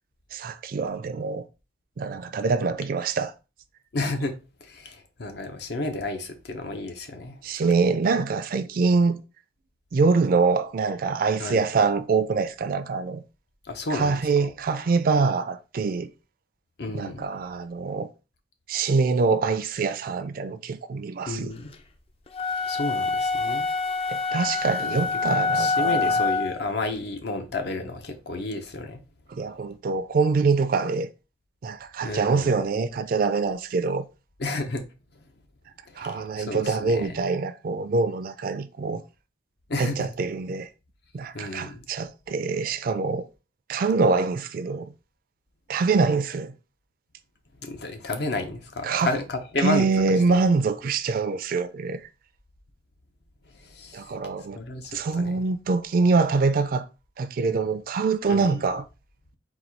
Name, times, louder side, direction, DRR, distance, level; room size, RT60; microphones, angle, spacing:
voice 1, 0.3-1.4 2.0-3.3 7.4-9.2 9.9-13.2 13.9-16.1 16.9-18.1 18.7-21.5 24.1-26.2 29.3-31.1 31.6-34.1 36.0-39.0 39.8-40.7 41.1-43.3 43.7-44.9 45.7-46.5 48.8-49.1 49.6-52.0 53.9-54.6 54.9-56.9 57.2-58.8, right 4 dB, 50° right, 0.4 m, -24 dB
voice 2, 3.9-4.4 4.6-8.0 11.4-11.6 13.6-14.5 16.8-17.2 21.3-21.7 22.6-23.7 24.8-25.0 25.5-29.0 32.0-32.6 34.4-34.8 35.9-37.2 39.7-40.1 41.3-41.9 47.6-50.4 53.6-54.1 54.5-55.5 58.3-58.6, left 2 dB, 60° left, 0.7 m, -32 dB
sound 1, 22.3-26.6, left 4 dB, 30° left, 0.4 m, -26 dB
4.0 x 2.3 x 4.4 m
head